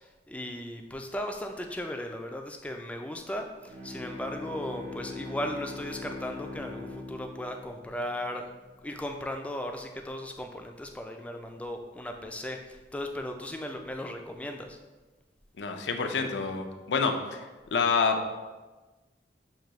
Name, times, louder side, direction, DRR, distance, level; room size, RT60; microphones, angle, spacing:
voice 1, 0.3-8.5 8.8-14.8, left 1 dB, 10° left, 3 dB, 0.3 m, -36 dB
Bowed string instrument, 3.6-8.7, left 3 dB, 85° right, 1.2 m, -42 dB
voice 2, 15.6-17.4 17.7-18.3, left 5 dB, 90° left, 5 dB, 0.5 m, -27 dB
6.5 x 2.7 x 3.1 m, 1.2 s
head